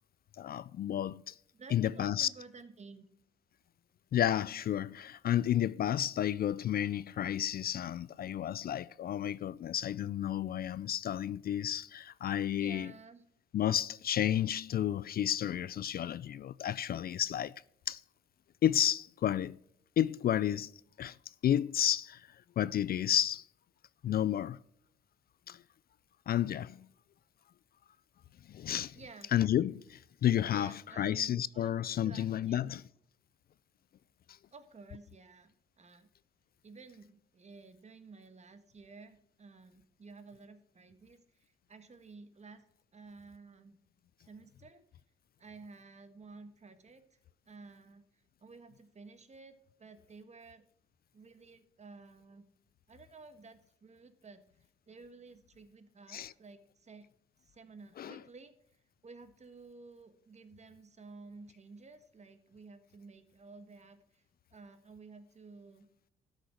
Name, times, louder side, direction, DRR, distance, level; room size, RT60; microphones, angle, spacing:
voice 1, 0.4-1.3 1.7-2.3 4.1-12.9 13.5-17.5 17.9-18.0 18.6-19.6 20.0-20.7 21.0-21.2 21.4-22.3 22.6-23.5 24.0-24.6 25.5-25.6 26.3-26.9 28.5-29.0 29.3-32.8 56.1-56.3 58.0-58.2, left 11 dB, 50° left, 0.4 m, -31 dB
voice 2, 1.5-3.0 12.6-13.2 28.9-29.3 30.5-32.8 34.5-36.1 36.6-42.6 42.9-43.8 44.2-44.8 45.4-47.0 47.4-50.6 51.1-52.5 52.9-54.4 54.9-57.1 57.4-58.5 59.0-64.2 64.5-65.9, right 4 dB, 35° right, 1.5 m, -53 dB
12.5 x 6.5 x 5.9 m
cardioid pair, 90°, 20 cm